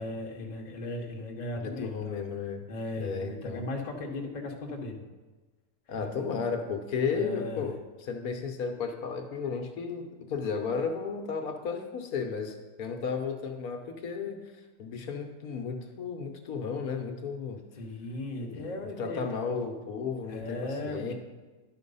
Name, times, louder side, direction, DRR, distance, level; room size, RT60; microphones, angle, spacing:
voice 1, 0.0-2.2 2.7-5.0 6.0-6.2 7.1-7.7 17.7-19.3 20.3-21.1, left 2 dB, 35° left, 0 dB, 1.0 m, -37 dB
voice 2, 1.6-2.7 3.0-3.7 5.9-17.6 18.4-21.1, left 5 dB, 75° left, 4 dB, 1.3 m, -34 dB
11.0 x 4.6 x 5.4 m, 1.2 s
omnidirectional pair, 1.6 m